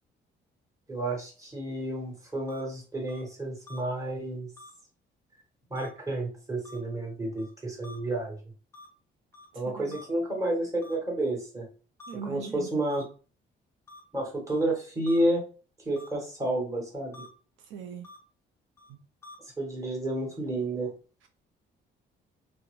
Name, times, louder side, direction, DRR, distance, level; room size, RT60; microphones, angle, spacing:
voice 1, 0.9-4.5 5.7-8.4 9.5-11.7 12.2-13.0 14.1-15.4 15.8-17.2 19.6-20.9, right 1 dB, 15° right, 1.2 m, -30 dB
sound 1, 2.5-2.6 3.1-3.2 3.7-3.8 4.6-4.7 5.8-5.9 6.7-6.8 7.4-7.5 7.8-8.0 8.7-8.9 9.3-9.5 9.9-10.0 10.8-10.9 12.0-12.1 12.9-13.0 13.9-14.0 14.5-14.6 15.1-15.2 16.0-16.1 17.1-17.3 18.0-18.2 18.8-18.9 19.2-19.4, left 2 dB, 10° left, 0.6 m, -47 dB
voice 2, 9.5-9.9 12.1-12.7 17.7-18.1 18.9-19.0, right 6 dB, 80° right, 0.4 m, -40 dB
2.4 x 2.0 x 3.0 m
cardioid pair, 90°, 20 cm